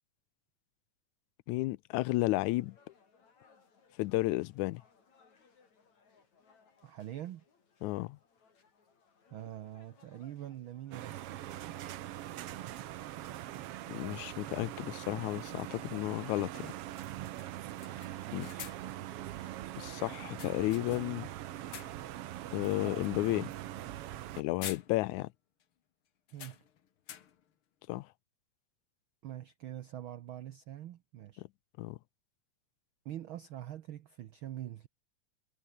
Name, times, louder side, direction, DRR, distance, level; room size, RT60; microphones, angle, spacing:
voice 1, 1.5-2.8 4.0-4.8 7.8-8.2 13.9-16.7 18.3-18.5 19.8-21.3 22.5-23.5 24.4-25.3 27.9-28.1 31.4-31.5 31.8-32.0, left 19 dB, 85° left, 2.0 m, -33 dB
sound 1, 2.1-13.0, left 5 dB, 65° left, 5.6 m, -67 dB
voice 2, 6.8-7.4 9.3-11.2 18.1-18.8 26.3-26.6 29.2-31.4 33.0-34.9, right 12 dB, 80° right, 1.1 m, -44 dB
sound 2, 10.9-24.4, right 13 dB, 65° right, 1.5 m, -42 dB
sound 3, 13.8-13.9 15.9-16.1 16.4-16.5 17.0-17.1 17.4-19.0 20.1-21.2 21.5-22.2 22.6-22.8 24.1-24.3 24.6-25.4 25.6-25.7 26.3-27.5, left 9 dB, 50° left, 2.0 m, -49 dB
omnidirectional pair, 3.4 m